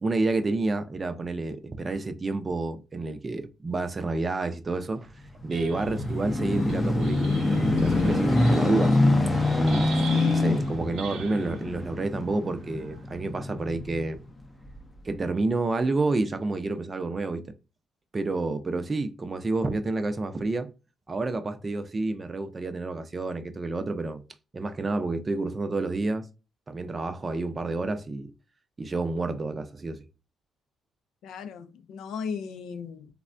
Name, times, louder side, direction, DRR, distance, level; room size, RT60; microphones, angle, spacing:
voice 1, 0.0-5.1 5.4-9.0 9.6-14.2 15.0-17.4 18.1-20.7 21.1-24.2 24.5-26.3 26.7-28.3 28.8-30.1, right 3 dB, 30° right, 0.5 m, -29 dB
sound 1, 5.2-14.0 14.7-14.8, left 2 dB, 20° left, 0.5 m, -25 dB
sound 2, 5.5-11.7 12.6-13.2, right 6 dB, 80° right, 0.7 m, -44 dB
voice 2, 10.1-10.6 31.2-33.1, left 6 dB, 80° left, 0.4 m, -35 dB
3.3 x 2.1 x 2.4 m
cardioid pair, 90°, 0 cm